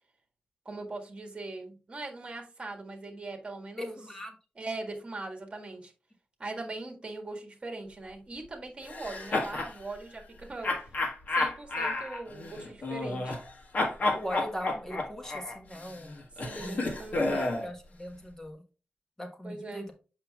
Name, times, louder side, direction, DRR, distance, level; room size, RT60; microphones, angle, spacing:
voice 1, 0.6-4.0 4.6-5.9 6.4-10.7 11.3-13.4 16.4-17.5 19.4-19.9, right 2 dB, 35° right, 2 dB, 1.6 m, -40 dB
voice 2, 3.8-4.3 9.0-9.1 14.1-16.2 16.6-16.9 17.3-18.6 19.2-19.9, equal, 15° left, 3 dB, 1.3 m, -40 dB
sound 1, 8.9-9.7 10.6-13.5 13.7-17.7, left 2 dB, 60° left, 1.5 m, -31 dB
7.6 x 5.5 x 2.3 m, 0.34 s
wide cardioid pair, 120°, 3 cm